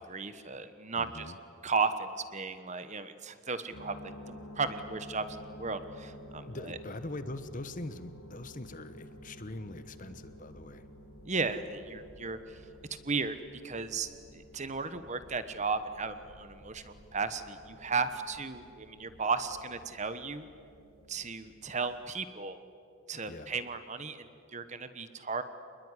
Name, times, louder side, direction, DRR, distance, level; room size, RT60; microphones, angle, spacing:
voice 1, 0.1-1.3 1.6-3.9 4.3-5.3 5.6-6.8 11.2-12.6 13.0-13.4 13.6-14.1 14.3-20.5 21.1-22.6 23.1-25.4, right 4 dB, 30° right, 11 dB, 1.2 m, -35 dB
voice 2, 1.0-1.4 6.5-10.9 23.3-23.6, left 2 dB, 35° left, 11 dB, 1.1 m, -42 dB
sound 1, 3.7-22.1, equal, 75° left, 7.7 m, -52 dB
27.0 x 21.0 x 9.8 m, 2.6 s
head